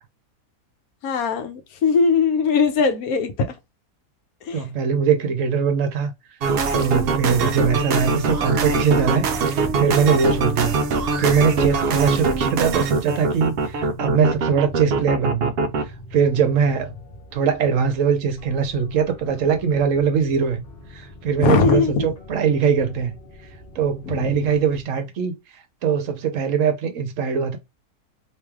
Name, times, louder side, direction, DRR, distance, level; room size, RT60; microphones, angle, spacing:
voice 1, 1.0-3.5 4.4-4.6 21.4-22.1 24.1-24.3, left 5 dB, 70° left, 1.1 m, -20 dB
voice 2, 4.5-6.1 6.7-10.8 11.2-15.5 16.1-16.9 17.3-20.6 20.9-23.1 23.7-25.3 25.8-27.6, right 6 dB, 65° right, 1.0 m, -21 dB
sound 1, 6.4-15.8, right 4 dB, 90° right, 0.5 m, -22 dB
sound 2, 8.9-24.8, left 2 dB, 45° left, 0.9 m, -42 dB
3.1 x 2.9 x 3.5 m
omnidirectional pair, 1.6 m